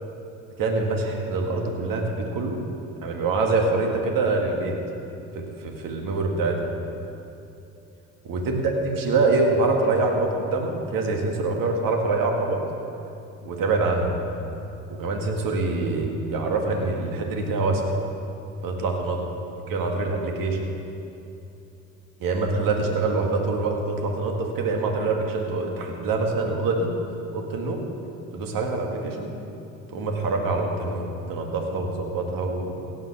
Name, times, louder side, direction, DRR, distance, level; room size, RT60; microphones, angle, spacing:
voice 1, 0.6-2.6 3.0-4.8 5.4-6.7 8.2-12.6 13.4-14.1 14.9-17.9 18.6-19.2 19.7-20.6 22.2-26.9 27.3-27.8 28.3-29.3 29.9-32.7, right 3 dB, 65° right, 1 dB, 2.0 m, -25 dB
17.0 x 5.8 x 7.1 m, 2.8 s
supercardioid pair, 70°, 36 cm